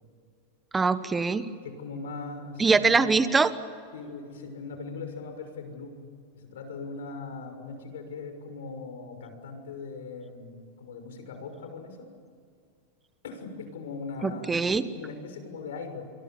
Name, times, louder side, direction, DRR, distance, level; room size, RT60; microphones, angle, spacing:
voice 1, 0.7-1.4 2.6-3.5 14.2-14.8, right 4 dB, 15° right, 12 dB, 1.3 m, -23 dB
voice 2, 1.6-3.1 3.9-6.0 6.3-12.1 13.2-14.6 14.9-16.0, left 4 dB, 85° left, 6 dB, 6.3 m, -40 dB
29.0 x 23.5 x 7.3 m, 2.2 s
supercardioid pair, 130°, 0 cm